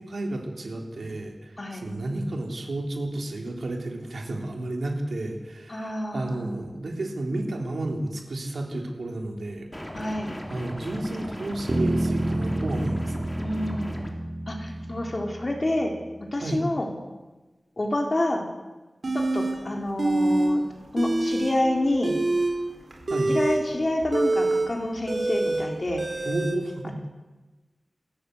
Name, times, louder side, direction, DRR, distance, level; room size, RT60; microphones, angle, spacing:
voice 1, 0.0-9.7 10.5-13.4 16.4-16.6 23.1-23.3 26.3-27.1, right 2 dB, 85° right, 2 dB, 3.9 m, -32 dB
voice 2, 1.6-1.9 5.7-6.6 9.9-10.3 11.2-11.3 13.4-13.9 14.5-15.9 16.2-16.9 17.8-18.5 19.1-20.6 20.9-22.2 23.3-26.0, left 1 dB, 40° left, 1 dB, 4.1 m, -28 dB
sound 1, 9.7-14.1, equal, 10° left, 3.3 m, -38 dB
Bass guitar, 11.7-16.1, right 1 dB, 30° right, 3.1 m, -29 dB
sound 2, 19.0-19.6 20.0-20.5 20.8-21.6 21.9-26.6, right 2 dB, 60° right, 4.8 m, -25 dB
27.5 x 14.0 x 8.2 m, 1.2 s
wide cardioid pair, 90°, 0 cm